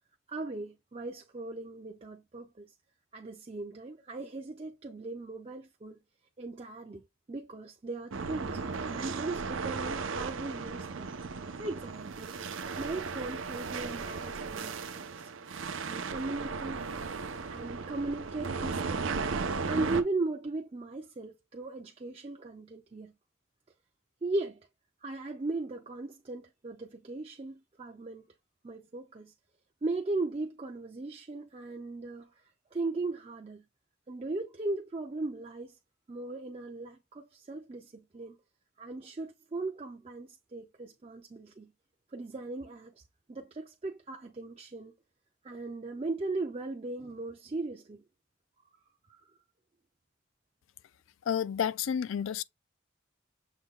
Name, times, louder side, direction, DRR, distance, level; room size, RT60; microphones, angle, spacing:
voice 1, 0.3-2.7 3.1-6.0 6.4-11.1 11.6-12.4 12.8-15.3 15.8-16.9 17.5-19.4 19.7-23.1 24.2-24.6 25.0-28.3 28.6-29.3 29.8-32.3 32.7-33.6 34.1-35.7 36.1-38.4 38.8-41.7 42.1-42.9 43.3-44.9 45.4-48.0, right 2 dB, 30° right, 0.4 m, -37 dB
sound 1, 8.1-20.0, right 4 dB, 80° right, 0.6 m, -36 dB
voice 2, 51.2-52.4, left 8 dB, 80° left, 0.3 m, -30 dB
6.5 x 2.2 x 3.6 m
head